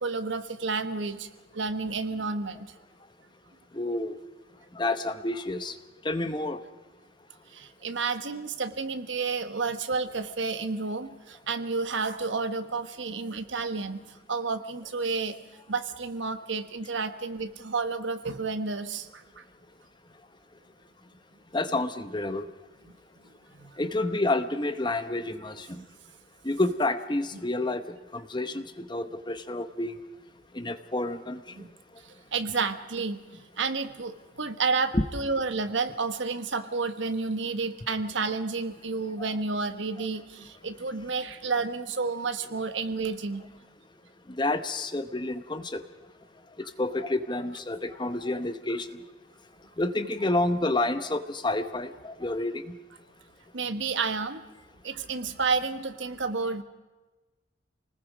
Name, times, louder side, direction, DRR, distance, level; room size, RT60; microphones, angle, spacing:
voice 1, 0.0-1.3 1.5-2.7 7.5-14.0 14.3-15.4 15.7-19.4 22.9-23.0 23.6-23.7 31.6-31.7 32.0-43.4 53.5-54.4 54.8-56.6, right 4 dB, 70° right, 10 dB, 1.3 m, -31 dB
voice 2, 3.7-4.1 4.7-5.7 6.0-6.6 21.5-22.5 23.8-25.8 26.4-27.8 28.1-28.6 28.9-29.9 30.5-31.4 34.9-35.0 39.2-39.3 44.3-45.8 46.8-48.9 49.8-52.7, left 2 dB, 20° left, 10 dB, 0.9 m, -29 dB
28.5 x 19.5 x 5.1 m, 1.2 s
head